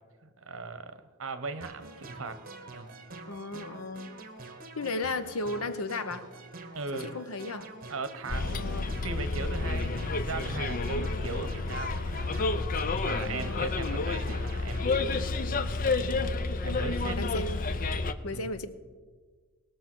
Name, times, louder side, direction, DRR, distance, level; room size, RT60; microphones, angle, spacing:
voice 1, 0.2-2.4 2.7-2.9 6.7-7.1 7.9-12.7 13.0-15.0 16.6-17.2 18.3-18.5, right 3 dB, 65° right, 11 dB, 1.0 m, -39 dB
sound 1, 1.6-15.3, right 2 dB, 45° right, 1.4 m, -46 dB
voice 2, 3.3-4.2 4.8-6.3 7.0-7.7 8.5-8.9 13.3-13.7 17.2-17.6 18.2-18.7, left 2 dB, 80° left, 12 dB, 0.9 m, -35 dB
Bus, 8.3-18.1, left 3 dB, 40° left, 0.6 m, -30 dB
19.5 x 6.6 x 6.1 m, 1.5 s
head